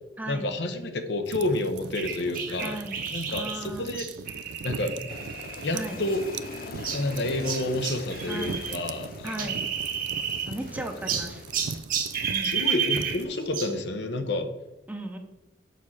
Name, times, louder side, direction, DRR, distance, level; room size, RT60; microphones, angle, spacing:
voice 1, 0.3-2.8 3.1-4.1 4.6-4.9 5.6-6.2 6.9-9.6 12.4-14.5, left 2 dB, 70° left, 7 dB, 0.9 m, -29 dB
sound 1, 1.2-13.2, right 5 dB, 75° right, 0.4 m, -41 dB
sound 2, 1.9-8.8 9.0-10.7 11.1-13.8, right 7 dB, 50° right, 1.2 m, -32 dB
voice 2, 2.6-3.0 3.3-3.9 5.7-6.0 8.3-8.6 9.2-9.6 10.5-11.4 12.3-12.5 14.9-15.2, right 1 dB, 10° right, 4 dB, 0.8 m, -36 dB
Aircraft, 5.1-11.8, left 5 dB, 50° left, 0.3 m, -43 dB
6.7 x 4.3 x 6.4 m, 0.96 s
head